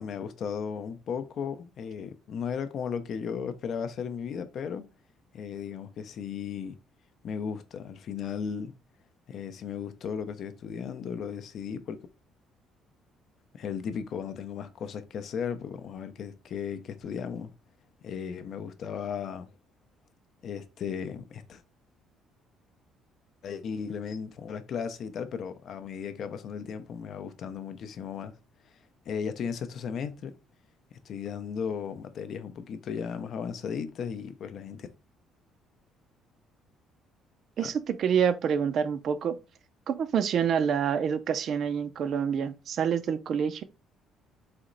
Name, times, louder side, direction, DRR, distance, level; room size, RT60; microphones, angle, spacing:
voice 1, 0.0-4.9 5.3-6.8 7.2-8.7 9.3-12.0 13.5-17.5 18.0-19.5 20.4-21.6 23.4-28.3 29.1-30.3 30.9-34.9 37.6-37.7, left 7 dB, 45° left, 0.5 m, -35 dB
voice 2, 37.6-39.4 39.9-43.6, right 7 dB, 45° right, 0.4 m, -27 dB
4.2 x 3.0 x 3.8 m
cardioid pair, 175°, 0 cm